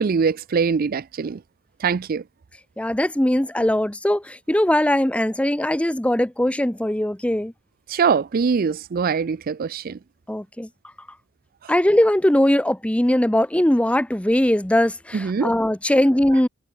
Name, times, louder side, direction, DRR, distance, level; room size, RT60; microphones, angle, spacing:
voice 1, 0.0-1.4 1.8-2.2 7.9-10.0 11.6-11.7 15.1-15.5, right 5 dB, 45° right, 0.4 m, -23 dB
voice 2, 2.8-7.5 10.3-10.7 11.7-16.5, left 1 dB, 5° left, 0.7 m, -20 dB
head